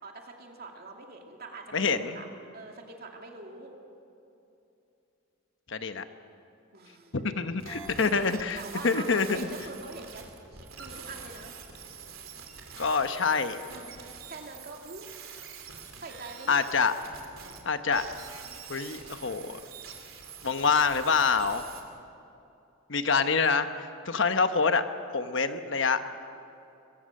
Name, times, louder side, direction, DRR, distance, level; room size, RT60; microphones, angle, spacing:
voice 1, 0.0-2.3 2.5-3.8 6.7-7.3 7.9-11.5 13.7-15.1 15.7-16.7, right 3 dB, 50° right, 2 dB, 2.6 m, -44 dB
voice 2, 1.7-2.2 5.7-6.0 7.1-9.5 12.8-13.6 16.5-16.9 17.6-18.1 18.7-19.6 20.4-21.6 22.9-24.8 25.1-26.0, left 5 dB, 60° left, 9 dB, 1.0 m, -26 dB
sound 1, 7.6-17.6 17.9-21.8, right 6 dB, 80° right, 3.1 m, -46 dB
22.5 x 22.0 x 6.6 m, 2.8 s
head